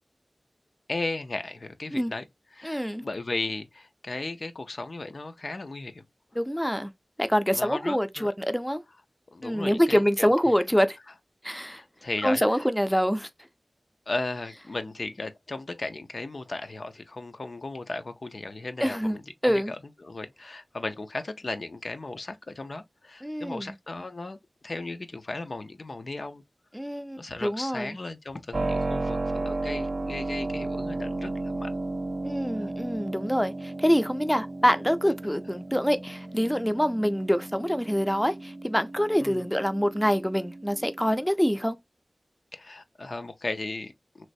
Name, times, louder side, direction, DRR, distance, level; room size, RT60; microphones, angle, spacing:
voice 1, 0.9-2.2 2.5-6.0 7.5-8.3 9.3-10.3 11.5-12.7 14.1-24.4 24.6-26.4 27.2-31.7 32.6-32.7 39.2-39.5 42.5-44.3, left 2 dB, 65° left, 0.4 m, -36 dB
voice 2, 2.6-3.0 6.4-6.9 7.2-8.8 9.4-11.0 11.4-11.8 12.2-13.3 18.8-19.7 23.2-23.7 26.7-27.9 32.2-41.8, equal, 5° left, 0.4 m, -25 dB
Keyboard (musical), 28.5-41.3, right 2 dB, 70° right, 0.5 m, -34 dB
3.1 x 3.0 x 2.6 m
wide cardioid pair, 60°, 0 cm